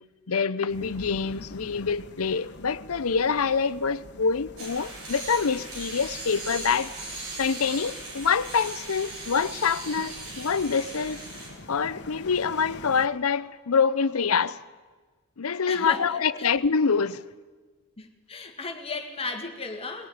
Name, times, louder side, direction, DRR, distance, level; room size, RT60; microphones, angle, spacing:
voice 1, 0.3-6.9 7.4-11.2 11.7-14.6 15.4-17.2, left 5 dB, 80° left, 0.7 m, -26 dB
sound 1, 0.7-13.1, left 2 dB, 55° left, 1.4 m, -46 dB
sound 2, 4.6-11.5, right 2 dB, 70° right, 7.9 m, -39 dB
voice 2, 15.7-16.5 18.0-20.1, left 3 dB, 25° left, 2.0 m, -35 dB
20.0 x 18.0 x 9.4 m
head